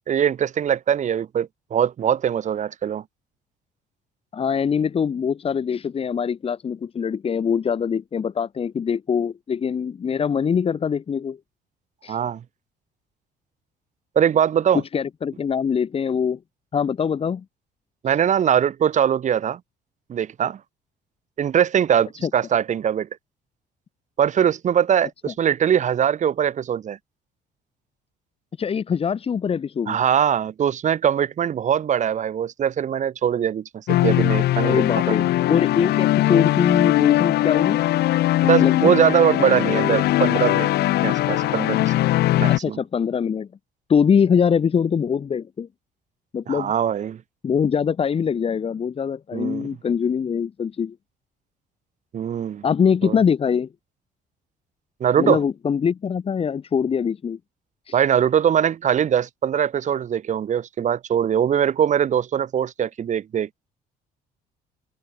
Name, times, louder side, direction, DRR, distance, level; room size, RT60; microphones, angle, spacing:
voice 1, 0.1-3.0 12.1-12.4 14.2-14.8 18.0-19.6 20.1-20.6 21.4-23.1 24.2-27.0 29.9-35.3 38.4-40.7 41.0-42.1 42.4-42.8 46.5-47.2 49.3-49.7 52.1-52.6 53.0-53.2 55.0-55.4 57.9-63.5, right 9 dB, 45° right, 1.6 m, -22 dB
voice 2, 4.3-11.4 12.0-12.2 14.7-16.4 16.7-17.4 18.0-18.2 22.2-22.3 28.6-30.0 34.6-35.2 35.5-37.8 38.6-38.9 42.6-43.5 43.9-45.7 46.3-46.7 47.4-51.0 52.6-53.7 55.2-57.4 57.8-58.0, left 7 dB, 35° left, 1.4 m, -23 dB
sound 1, 33.9-42.6, left 15 dB, 75° left, 1.8 m, -20 dB
cardioid pair, 110°, 17 cm